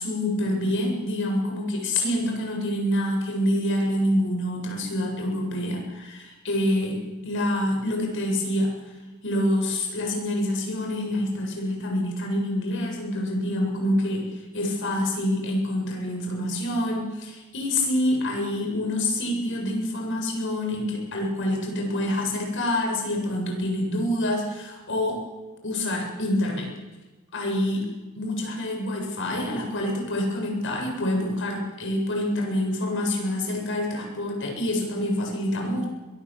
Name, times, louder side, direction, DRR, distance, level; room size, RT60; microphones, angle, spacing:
voice 1, 0.0-7.0 7.2-8.7 9.2-25.2 25.6-26.7 27.3-27.8 28.2-35.9, left 1 dB, 60° left, 2 dB, 7.7 m, -26 dB
23.0 x 22.5 x 7.6 m, 1.2 s
head